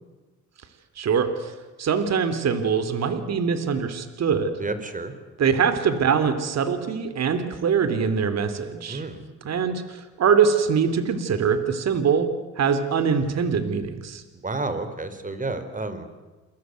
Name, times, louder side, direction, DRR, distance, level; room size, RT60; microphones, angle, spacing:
voice 1, 1.0-1.5 1.8-4.5 5.4-9.0 9.4-12.3 12.6-14.2, right 6 dB, 60° right, 10 dB, 3.3 m, -23 dB
voice 2, 4.6-5.1 8.9-9.2 14.4-16.1, right 3 dB, 25° right, 10 dB, 4.4 m, -30 dB
29.0 x 21.5 x 9.5 m, 1.2 s
cardioid pair, 90°, 30 cm